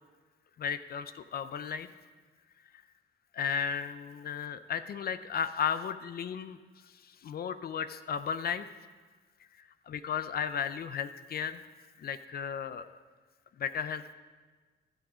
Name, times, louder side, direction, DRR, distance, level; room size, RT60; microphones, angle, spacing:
voice 1, 0.6-1.9 3.3-6.6 6.9-8.7 9.6-11.6 12.0-12.9 13.6-14.1, left 7 dB, 50° left, 12 dB, 0.5 m, -34 dB
14.5 x 6.2 x 4.9 m, 1.4 s
cardioid pair, 90°, 20 cm